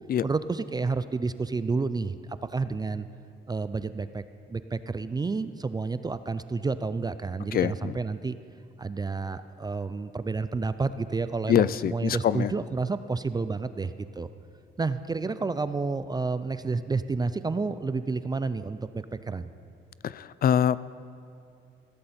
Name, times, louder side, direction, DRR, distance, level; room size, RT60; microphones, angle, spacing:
voice 1, 0.2-2.2 2.5-3.1 3.5-4.2 4.5-8.4 8.8-14.3 14.8-19.5, right 4 dB, 20° right, 13 dB, 0.4 m, -30 dB
voice 2, 7.5-8.0 11.5-12.5 20.0-20.8, left 9 dB, 50° left, 18 dB, 0.4 m, -24 dB
15.5 x 13.5 x 4.3 m, 2.6 s
cardioid pair, 90°, 20 cm